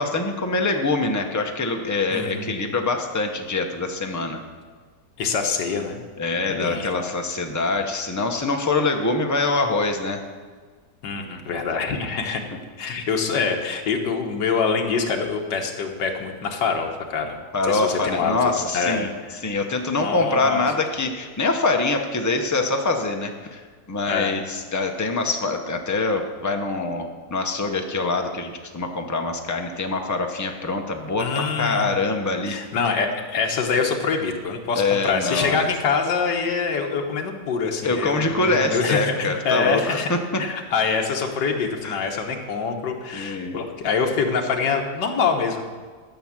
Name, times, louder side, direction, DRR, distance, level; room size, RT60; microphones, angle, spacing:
voice 1, 0.0-4.4 6.2-10.2 17.5-19.1 19.4-32.6 34.8-35.6 37.8-40.4 41.8-42.0 43.1-43.6, left 3 dB, 20° left, 4 dB, 0.5 m, -24 dB
voice 2, 2.1-2.6 5.2-6.0 6.5-7.1 11.0-12.4 12.8-17.4 17.7-19.4 20.0-20.6 24.1-24.3 31.2-32.0 32.5-40.1 40.4-45.6, left 5 dB, 80° left, 3 dB, 1.8 m, -25 dB
12.5 x 6.2 x 7.3 m, 1.5 s
omnidirectional pair, 1.9 m